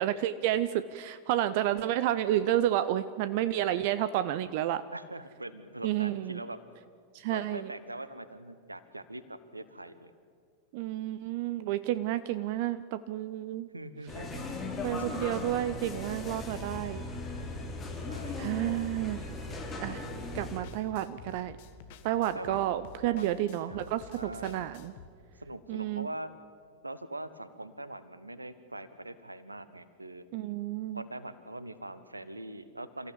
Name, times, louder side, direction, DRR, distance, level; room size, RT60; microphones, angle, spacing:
voice 1, 0.0-4.8 5.8-6.4 7.1-7.7 10.7-13.7 14.8-17.0 18.4-19.2 19.8-20.1 20.3-21.6 22.0-24.9 25.7-26.1 30.3-31.0, right 13 dB, 50° right, 14 dB, 0.7 m, -30 dB
voice 2, 4.9-6.6 7.3-10.1 13.7-14.6 14.8-15.1 18.1-18.9 22.3-22.8 23.0-24.7 25.4-26.3 26.8-30.2 30.9-33.1, right 1 dB, 85° right, 14 dB, 1.3 m, -43 dB
sound 1, 14.1-20.6, left 2 dB, 20° left, 4.7 m, -38 dB
sound 2, 20.0-25.1, left 6 dB, 50° left, 1.8 m, -51 dB
28.5 x 15.0 x 8.6 m, 2.1 s
figure-of-eight pair, 90°, 0 cm